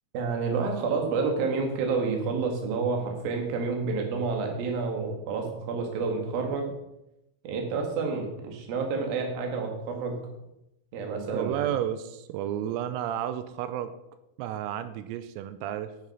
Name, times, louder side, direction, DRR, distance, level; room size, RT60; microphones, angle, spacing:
voice 1, 0.1-6.7 7.4-10.1 10.9-11.6, right 4 dB, 55° right, 2 dB, 3.1 m, -29 dB
voice 2, 11.3-13.9 14.4-15.9, right 11 dB, 90° right, 11 dB, 3.4 m, -32 dB
9.7 x 9.1 x 5.6 m, 0.88 s
omnidirectional pair, 6.0 m